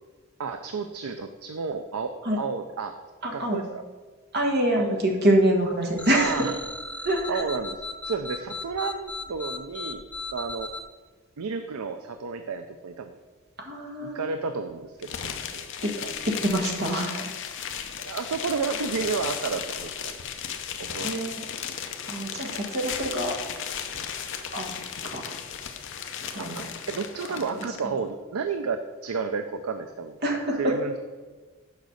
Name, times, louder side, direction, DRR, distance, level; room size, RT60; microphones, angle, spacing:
voice 1, 0.4-2.9 3.3-3.8 4.8-5.0 6.1-6.5 7.0-10.0 10.3-10.7 11.4-13.2 14.0-15.7 16.0-16.1 18.0-20.2 20.8-21.5 26.4-30.2 30.6-31.0, right 5 dB, 80° right, 8 dB, 0.5 m, -32 dB
voice 2, 3.2-3.6 4.3-6.4 7.0-7.4 13.6-14.2 15.8-15.9 16.3-17.3 21.0-21.4 22.1-23.4 24.5-24.7 25.0-25.3 26.3-26.6 27.3-27.4 30.2-30.7, right 1 dB, 45° right, 1 dB, 1.3 m, -25 dB
sound 1, 6.0-10.8, left 3 dB, 5° left, 0.4 m, -36 dB
sound 2, 15.0-27.8, left 8 dB, 55° left, 0.7 m, -35 dB
6.6 x 5.3 x 6.4 m, 1.3 s
head